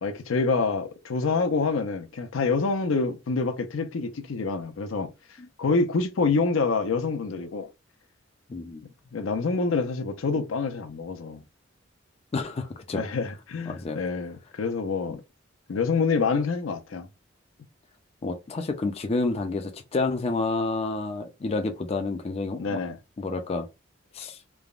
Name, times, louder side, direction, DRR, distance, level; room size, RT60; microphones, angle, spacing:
voice 1, 0.0-5.1 5.6-7.7 9.1-11.4 12.9-15.2 15.7-17.1 22.6-23.0, left 4 dB, 80° left, 0.5 m, -26 dB
voice 2, 8.5-8.8 12.3-13.0 13.7-14.0 15.1-15.2 18.2-22.8 23.2-23.7 24.1-24.4, left 3 dB, 30° left, 0.4 m, -29 dB
3.3 x 2.1 x 2.4 m
head